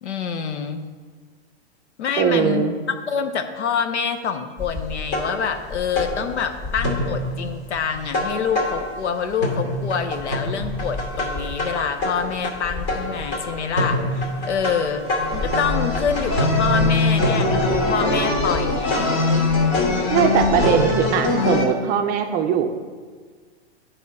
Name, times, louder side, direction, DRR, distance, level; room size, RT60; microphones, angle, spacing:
voice 1, 0.0-0.9 2.0-15.1 15.3-19.2 19.8-20.3, left 6 dB, 85° left, 8 dB, 0.8 m, -26 dB
voice 2, 2.2-2.8 20.1-22.7, right 7 dB, 25° right, 6 dB, 0.5 m, -20 dB
sound 1, 4.6-9.2 9.4-21.7, left 2 dB, 45° left, 2.4 m, -23 dB
9.3 x 3.6 x 5.3 m, 1.5 s
hypercardioid pair, 125°, 34 cm